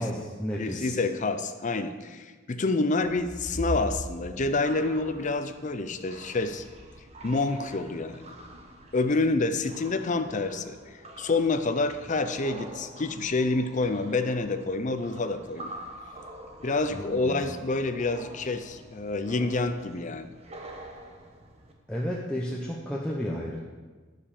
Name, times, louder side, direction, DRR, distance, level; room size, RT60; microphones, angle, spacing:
voice 1, 0.0-1.0 16.9-17.4 21.9-23.6, equal, 5° left, -3 dB, 0.7 m, -32 dB
voice 2, 0.6-6.6 7.2-8.2 8.9-15.7 16.6-20.3, left 3 dB, 40° left, 9 dB, 0.6 m, -28 dB
sound 1, 3.0-21.7, right 1 dB, 35° right, 1.1 m, -43 dB
9.9 x 5.4 x 6.6 m, 1.4 s
head